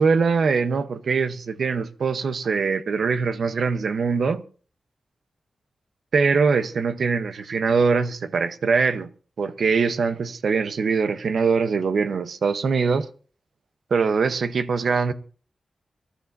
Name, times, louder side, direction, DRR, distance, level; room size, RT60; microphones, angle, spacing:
voice 1, 0.0-4.4 6.1-9.1 9.4-13.1 13.9-15.1, right 5 dB, 70° right, 0.9 m, -22 dB
24.0 x 13.0 x 2.7 m
wide cardioid pair, 105°, 0 cm